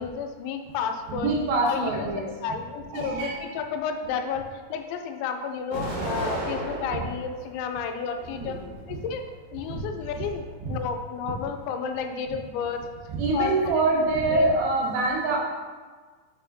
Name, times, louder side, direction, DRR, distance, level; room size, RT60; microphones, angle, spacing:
voice 1, 0.0-1.3 1.6-8.6 8.9-9.2 9.5-12.8 13.3-13.8 14.2-14.5, left 6 dB, 90° left, 6 dB, 2.9 m, -31 dB
voice 2, 1.1-2.2 2.9-3.4 8.3-8.6 9.7-9.8 10.2-10.3 10.6-10.7 13.1-15.4, right 2 dB, 75° right, -2 dB, 3.0 m, -25 dB
Explosion, 5.7-7.4 7.9-8.8, right 1 dB, 55° right, 3.2 m, -33 dB
7.2 x 5.6 x 2.7 m, 1.4 s
omnidirectional pair, 5.2 m